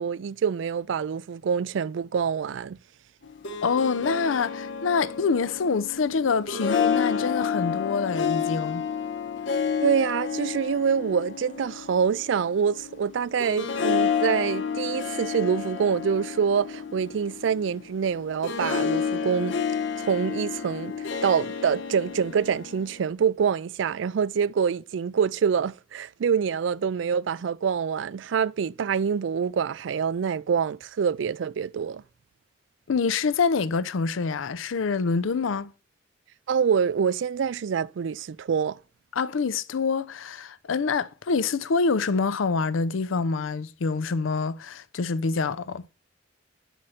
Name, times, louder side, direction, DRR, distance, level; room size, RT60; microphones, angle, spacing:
voice 1, 0.0-2.8 9.8-19.5 20.0-32.0 36.5-38.8, right 6 dB, 70° right, 0.4 m, -26 dB
Harp, 3.2-23.1, left 6 dB, 70° left, 0.9 m, -30 dB
voice 2, 3.6-8.8 32.9-35.7 39.1-45.9, left 4 dB, 90° left, 0.5 m, -26 dB
9.0 x 6.4 x 4.2 m
head